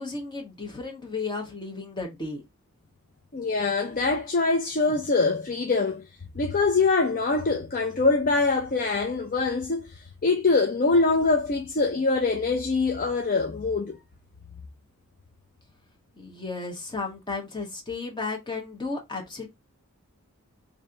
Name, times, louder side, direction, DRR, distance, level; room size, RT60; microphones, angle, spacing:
voice 1, 0.0-2.4 16.2-19.5, left 3 dB, 20° left, 1.2 m, -34 dB
voice 2, 3.3-6.1 6.3-14.0, left 3 dB, 40° left, 0.5 m, -24 dB
3.1 x 2.7 x 3.8 m
head